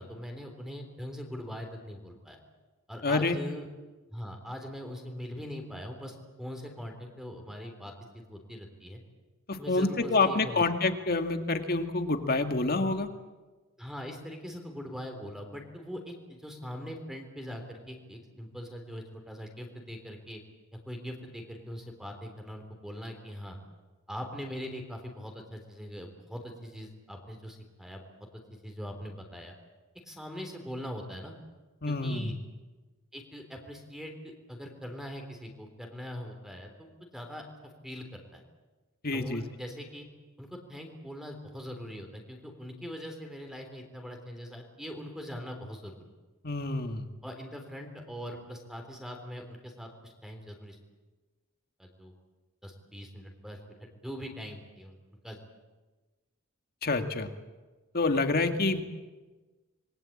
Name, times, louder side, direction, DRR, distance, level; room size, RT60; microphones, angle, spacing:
voice 1, 0.0-2.4 2.9-3.7 4.1-7.9 8.3-9.0 9.6-10.6 13.8-20.4 20.9-23.6 24.1-28.0 28.6-29.5 30.1-31.4 31.9-32.3 33.1-37.5 37.8-38.4 39.1-40.1 40.4-45.9 47.2-50.8 51.8-52.1 52.6-55.0 55.2-55.4, equal, ahead, 3 dB, 3.6 m, -42 dB
voice 2, 3.0-3.4 9.5-13.1 31.8-32.3 39.0-39.4 46.4-47.1 56.8-57.3 57.9-58.8, left 3 dB, 50° left, 7 dB, 2.1 m, -27 dB
27.0 x 22.0 x 8.7 m, 1.2 s
head